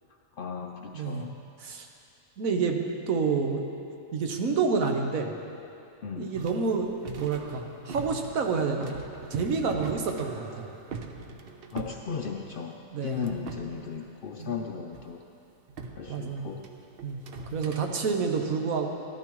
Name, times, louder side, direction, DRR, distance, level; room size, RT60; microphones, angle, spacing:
voice 1, 0.4-1.4 6.0-6.3 11.7-15.2 16.0-16.6 18.1-18.2, left 6 dB, 65° left, 3 dB, 0.5 m, -36 dB
voice 2, 0.9-1.3 1.6-1.9 2.4-2.8 3.1-3.6 4.1-5.3 6.2-6.9 7.2-8.9 9.3-10.7 12.9-13.3 14.4-14.6 16.1-16.5 17.0-17.2 17.5-18.9, right 5 dB, 90° right, 3 dB, 1.4 m, -28 dB
sound 1, 6.3-12.8 13.1-14.5 14.9-15.1 15.7-17.8, right 3 dB, 55° right, 0.8 m, -42 dB
13.0 x 13.0 x 3.1 m, 2.7 s
omnidirectional pair, 1.4 m